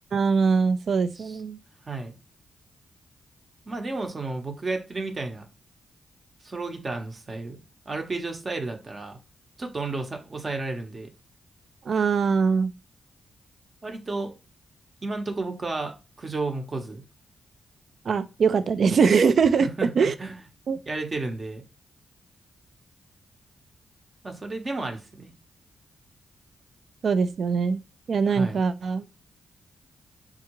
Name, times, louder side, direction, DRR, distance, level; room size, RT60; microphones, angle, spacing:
voice 1, 0.1-1.6 11.9-12.7 18.1-19.7 20.0-20.1 20.7-20.8 27.0-27.8 28.1-29.1, right 5 dB, 65° right, 0.3 m, -22 dB
voice 2, 1.9-2.2 3.7-5.4 6.4-7.6 7.9-9.2 9.6-11.1 13.8-14.3 15.0-17.0 19.6-20.4 20.9-21.6 24.2-25.3 28.3-28.6, right 3 dB, 40° right, 0.8 m, -32 dB
3.5 x 2.3 x 3.0 m
cardioid pair, 55°, 0 cm